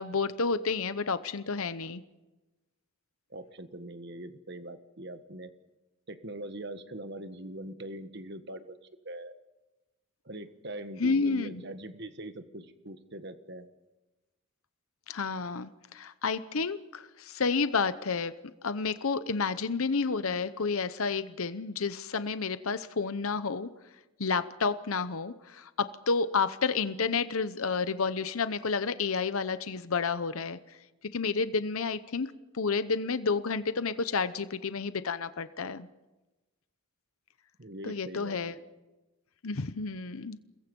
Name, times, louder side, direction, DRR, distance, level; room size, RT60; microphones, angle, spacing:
voice 1, 0.0-2.0 11.0-11.6 15.1-18.3 18.6-23.7 24.2-30.6 31.1-32.3 32.5-35.9 37.8-38.5 39.4-40.4, left 4 dB, 75° left, 13 dB, 0.8 m, -30 dB
voice 2, 3.3-5.5 6.1-8.8 9.0-9.4 10.2-13.7 37.6-38.7, right 1 dB, 50° right, 10 dB, 1.4 m, -42 dB
28.5 x 21.5 x 5.3 m, 1.1 s
head